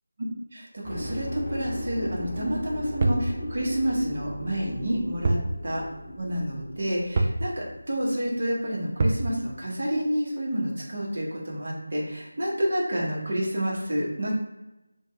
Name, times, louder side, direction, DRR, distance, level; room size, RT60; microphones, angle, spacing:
voice 1, 0.5-5.4 5.6-5.8 6.2-14.3, equal, 45° right, -4 dB, 1.0 m, -29 dB
sound 1, 0.8-8.6 8.9-9.0, left 1 dB, ahead, 0.8 m, -37 dB
sound 2, 3.0-3.3 5.2-5.5 5.8-5.9 7.2-7.4 9.0-9.3, right 2 dB, 30° right, 0.3 m, -24 dB
3.2 x 2.3 x 3.0 m, 0.98 s
figure-of-eight pair, 165°, 0 cm